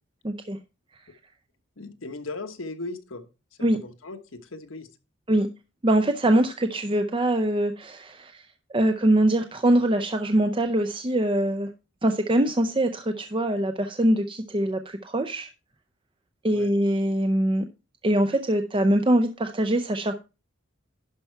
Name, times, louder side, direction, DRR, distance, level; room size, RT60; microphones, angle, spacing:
voice 1, 0.2-0.6 3.6-3.8 5.3-5.5 5.8-8.4 8.7-11.7 12.0-15.5 16.4-17.7 18.0-20.1, right 1 dB, 25° right, 6 dB, 0.6 m, -23 dB
voice 2, 1.8-3.2 3.6-4.9 16.5-16.7, left 2 dB, 80° left, 8 dB, 1.2 m, -37 dB
11.5 x 5.6 x 4.5 m, 0.30 s
head